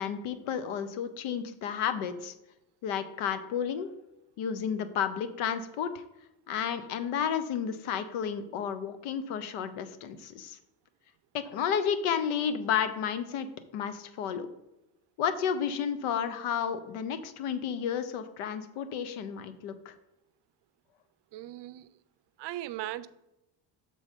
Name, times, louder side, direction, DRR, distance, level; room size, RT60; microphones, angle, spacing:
voice 1, 0.0-2.3 2.8-3.9 4.4-6.0 6.5-10.6 11.3-13.5 13.7-14.5 15.2-19.9, left 8 dB, 85° left, 0.9 m, -32 dB
voice 2, 21.3-21.9 22.4-23.1, right 14 dB, 55° right, 0.5 m, -38 dB
7.5 x 3.9 x 5.1 m
cardioid pair, 90°, 50 cm